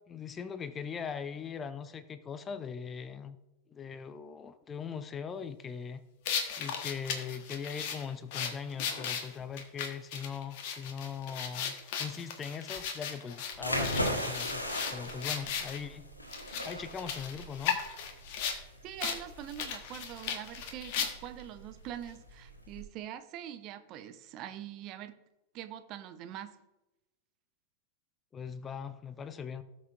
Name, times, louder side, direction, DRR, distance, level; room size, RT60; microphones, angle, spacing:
voice 1, 0.1-3.4 3.7-6.0 6.6-14.6 14.9-16.1 16.6-17.8 28.3-29.6, left 6 dB, 20° left, 14 dB, 0.6 m, -40 dB
sound 1, 6.2-15.8 16.3-18.6 19.0-19.2 19.5-21.4, left 7 dB, 50° left, 1.3 m, -36 dB
sound 2, 13.5-22.8, equal, 85° left, 1.5 m, -38 dB
voice 2, 18.8-25.2 25.5-26.6, right 11 dB, 40° right, 11 dB, 0.7 m, -44 dB
18.0 x 6.2 x 2.5 m, 0.98 s
figure-of-eight pair, 90°, 0 cm